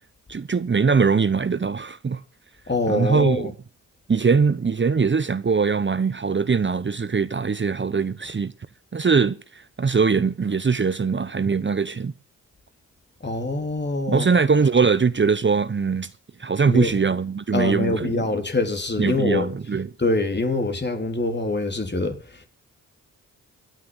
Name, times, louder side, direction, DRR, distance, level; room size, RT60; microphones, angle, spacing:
voice 1, 0.3-2.2 2.9-3.5 4.1-8.5 8.9-12.1 14.1-16.1 16.4-18.2 19.0-19.9, right 5 dB, 30° right, 1.0 m, -21 dB
voice 2, 2.7-3.5 13.2-14.3 16.7-16.9 17.5-19.5 20.0-22.5, left 2 dB, 30° left, 3.9 m, -24 dB
16.0 x 9.2 x 9.2 m
supercardioid pair, 50°, 36 cm